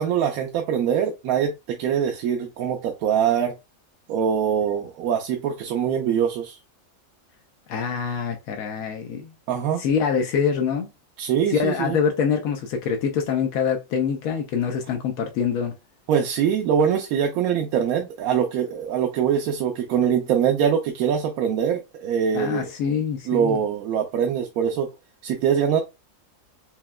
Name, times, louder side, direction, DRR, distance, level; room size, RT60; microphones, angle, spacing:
voice 1, 0.0-3.6 4.1-6.6 9.5-9.8 11.2-12.0 16.1-22.7 23.3-24.9 25.2-25.8, right 8 dB, 85° right, 1.1 m, -23 dB
voice 2, 7.7-9.3 9.8-10.9 11.5-15.7 22.3-23.6, left 6 dB, 90° left, 1.1 m, -25 dB
5.8 x 2.1 x 2.2 m
omnidirectional pair, 1.5 m